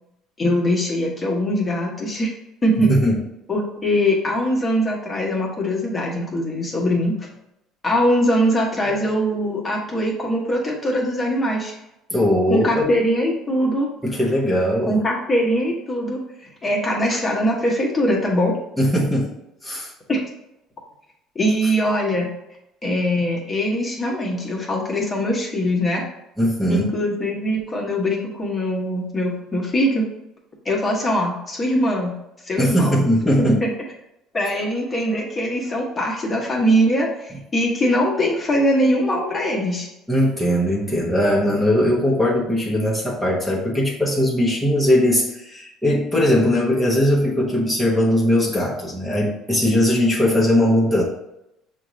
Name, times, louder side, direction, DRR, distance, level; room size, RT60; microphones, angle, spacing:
voice 1, 0.4-2.3 2.6-2.9 3.5-7.2 7.8-11.7 12.5-13.9 14.9-16.2 16.6-18.5 20.1-20.2 21.3-22.3 22.8-26.0 26.7-30.0 30.6-32.1 32.4-33.1 33.4-33.7 34.3-39.9, equal, 25° left, -2 dB, 1.1 m, -22 dB
voice 2, 2.8-3.2 12.1-12.9 14.0-15.0 18.8-19.3 19.6-19.9 26.4-26.9 32.6-33.6 40.1-51.0, equal, 5° right, -4 dB, 1.0 m, -19 dB
6.4 x 2.5 x 3.1 m, 0.86 s
cardioid pair, 110°, 0 cm